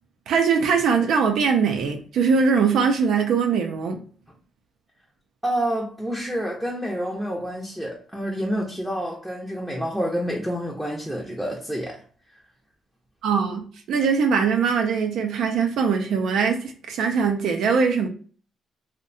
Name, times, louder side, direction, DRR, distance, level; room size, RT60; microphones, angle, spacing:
voice 1, 0.3-4.0 13.2-18.1, right 5 dB, 75° right, 0.3 m, -21 dB
voice 2, 5.4-12.0, equal, 5° right, 0.5 m, -28 dB
2.6 x 2.1 x 2.5 m
cardioid pair, 90°, 0 cm